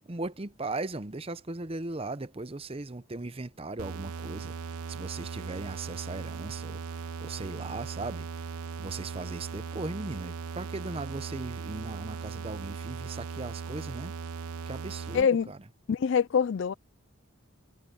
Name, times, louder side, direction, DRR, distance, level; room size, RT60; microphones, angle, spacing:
voice 1, 0.1-8.5 8.8-14.1 14.7-15.6, right 2 dB, 25° right, 0.7 m, -38 dB
sound 1, 3.8-15.2, right 5 dB, 85° right, 0.8 m, -38 dB
voice 2, 15.1-15.5 15.9-16.7, left 6 dB, 55° left, 0.3 m, -24 dB
head